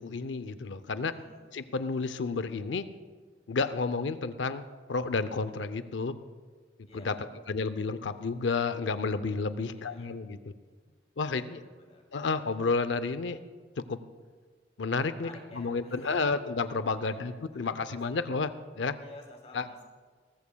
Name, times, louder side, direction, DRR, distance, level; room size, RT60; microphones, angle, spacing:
voice 1, 0.0-1.1 1.5-2.9 3.5-6.2 7.0-7.2 7.5-10.5 11.2-11.6 12.1-13.4 13.8-14.0 14.8-15.3 15.6-19.0 19.5-19.7, left 4 dB, 75° left, 12 dB, 0.6 m, -31 dB
voice 2, 1.0-1.4 6.9-7.2 9.7-10.1 11.3-12.0 15.2-16.3 17.0-18.2 19.0-19.9, left 1 dB, 35° left, 0 dB, 2.6 m, -52 dB
18.5 x 14.0 x 2.3 m, 1.5 s
head